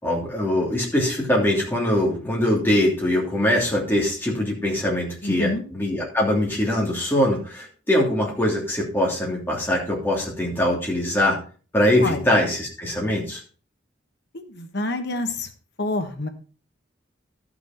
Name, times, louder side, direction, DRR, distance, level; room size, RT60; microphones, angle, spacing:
voice 1, 0.0-11.4 11.7-13.4, left 1 dB, 10° left, -3 dB, 2.9 m, -22 dB
voice 2, 5.2-5.6 12.0-12.3 14.3-15.5 15.8-16.3, left 2 dB, 55° left, 6 dB, 1.3 m, -27 dB
12.0 x 6.1 x 4.4 m, 0.39 s
head